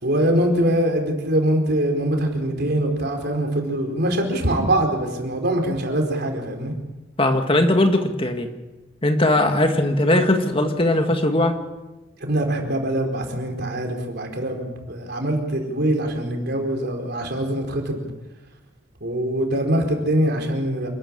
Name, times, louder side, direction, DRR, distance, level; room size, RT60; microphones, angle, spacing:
voice 1, 0.0-6.7 12.2-18.0 19.0-20.9, right 1 dB, 55° right, 3 dB, 4.4 m, -23 dB
voice 2, 7.2-8.5 9.0-11.5, left 1 dB, 30° left, 5 dB, 1.9 m, -19 dB
28.0 x 13.0 x 8.7 m, 1.1 s
head